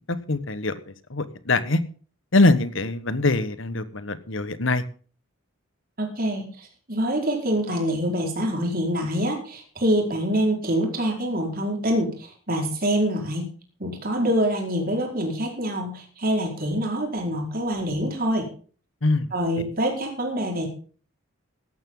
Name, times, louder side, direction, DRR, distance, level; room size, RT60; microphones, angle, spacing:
voice 1, 0.1-0.7 1.1-1.8 2.3-4.8 19.0-19.3, left 2 dB, 60° left, 13 dB, 1.4 m, -23 dB
voice 2, 6.0-13.5 13.8-18.5 19.3-20.7, equal, 45° right, 1 dB, 4.7 m, -25 dB
16.5 x 12.5 x 3.9 m, 0.40 s
head